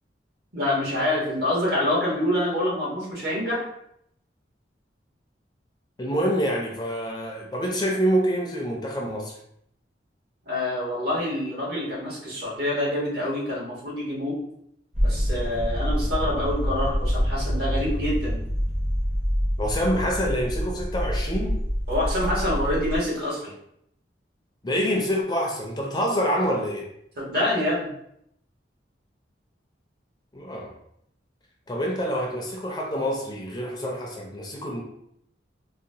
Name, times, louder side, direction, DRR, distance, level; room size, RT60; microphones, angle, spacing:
voice 1, 0.5-3.7 10.5-14.4 15.0-18.4 21.9-23.5 27.2-27.9, left 1 dB, 55° right, -5 dB, 1.2 m, -26 dB
voice 2, 6.0-9.4 19.6-21.6 24.6-26.9 30.3-30.7 31.7-34.8, equal, 20° left, -1 dB, 0.4 m, -26 dB
sound 1, 14.9-23.0, equal, 40° right, 0.9 m, -26 dB
3.9 x 2.0 x 2.7 m, 0.73 s
head